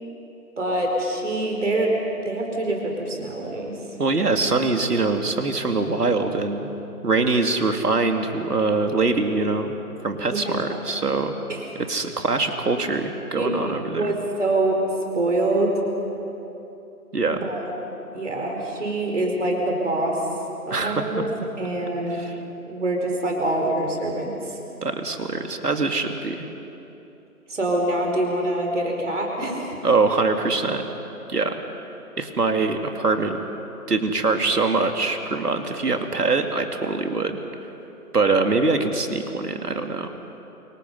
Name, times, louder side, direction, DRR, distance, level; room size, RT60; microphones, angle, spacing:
voice 1, 0.6-1.9 2.2-3.7 10.3-10.8 11.5-11.6 13.3-13.5 13.9-14.7 15.1-15.7 17.3-17.6 18.1-20.2 20.7-21.3 21.6-22.3 22.7-24.6 27.5-29.7, right 2 dB, 50° right, 1 dB, 4.8 m, -25 dB
voice 2, 4.0-6.8 7.0-9.7 10.0-11.4 11.9-14.1 17.1-17.4 20.7-21.2 22.2-22.3 24.8-26.5 29.8-30.8 31.3-31.6 32.2-33.4 33.9-37.4 38.1-40.1, right 3 dB, 80° right, 5 dB, 2.7 m, -23 dB
29.0 x 24.0 x 5.6 m, 3.0 s
figure-of-eight pair, 175°, 46 cm